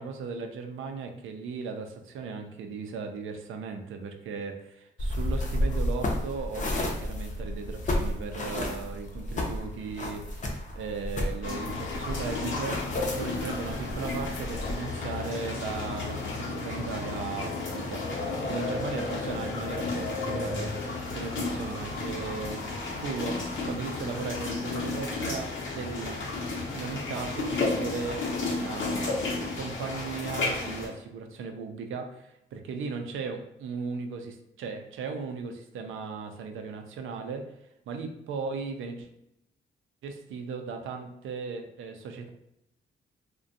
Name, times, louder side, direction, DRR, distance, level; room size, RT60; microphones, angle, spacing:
voice 1, 0.0-18.1 18.4-26.2 26.7-29.2 29.5-37.5 37.9-39.1 40.0-42.3, right 5 dB, 80° right, 5 dB, 0.4 m, -37 dB
sound 1, 5.0-14.7, left 1 dB, 40° left, 0.5 m, -32 dB
sound 2, 11.4-30.9, left 3 dB, 75° left, 0.7 m, -32 dB
2.5 x 2.2 x 2.6 m, 0.80 s
cardioid pair, 120°, 20 cm